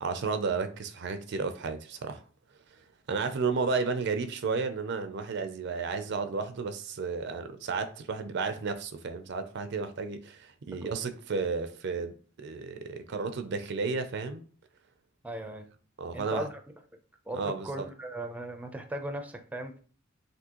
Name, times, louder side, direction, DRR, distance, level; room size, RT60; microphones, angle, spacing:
voice 1, 0.0-2.2 3.1-14.4 16.0-16.4 17.3-17.9, right 4 dB, 55° right, 0.5 m, -32 dB
voice 2, 15.2-15.7 16.1-16.6 17.3-19.8, right 1 dB, 5° right, 0.5 m, -37 dB
6.0 x 2.7 x 2.9 m
head